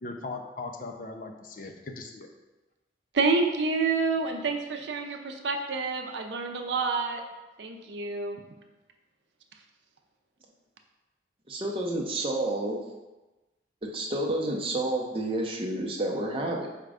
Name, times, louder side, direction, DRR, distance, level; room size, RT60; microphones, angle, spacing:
voice 1, 0.0-2.3, left 3 dB, 45° left, 4 dB, 0.4 m, -39 dB
voice 2, 3.1-7.2 7.6-8.4, right 4 dB, 70° right, 4 dB, 0.5 m, -28 dB
voice 3, 11.5-12.8 13.9-16.7, right 1 dB, 30° right, -1 dB, 0.6 m, -29 dB
4.9 x 2.2 x 4.8 m, 1.1 s
head